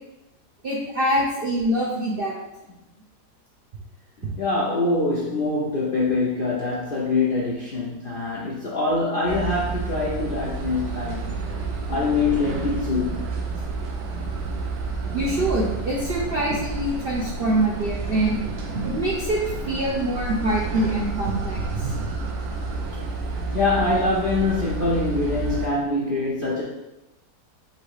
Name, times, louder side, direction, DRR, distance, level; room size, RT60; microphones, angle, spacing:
voice 1, 0.6-2.3 4.2-4.3 15.1-18.4 18.7-19.4 19.7-22.1, right 1 dB, 60° right, -4 dB, 0.6 m, -24 dB
voice 2, 4.4-11.3 11.9-13.3 17.4-17.5 23.5-26.6, left 3 dB, 60° left, -5 dB, 0.5 m, -24 dB
sound 1, 9.3-25.7, right 3 dB, 85° right, 1.3 m, -30 dB
3.9 x 2.7 x 4.7 m, 0.97 s
omnidirectional pair, 1.7 m